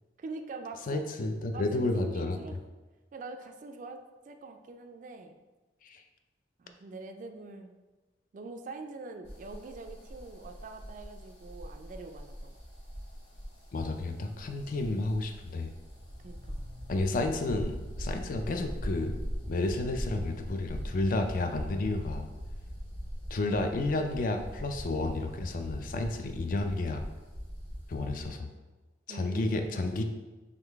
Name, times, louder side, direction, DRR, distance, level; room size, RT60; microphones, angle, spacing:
voice 1, 0.2-1.0 1.5-2.6 3.1-5.4 6.6-7.7 8.3-12.6 16.2-16.6 29.1-30.0, right 3 dB, 45° right, 5 dB, 0.3 m, -44 dB
voice 2, 0.9-2.4 5.8-6.0 13.7-15.7 16.9-19.2 19.5-22.3 23.3-27.0 27.9-28.5 29.1-30.0, left 2 dB, 50° left, 6 dB, 0.3 m, -31 dB
sound 1, 9.2-28.3, equal, 80° left, 1.2 m, -41 dB
3.7 x 3.2 x 3.4 m, 1.2 s
head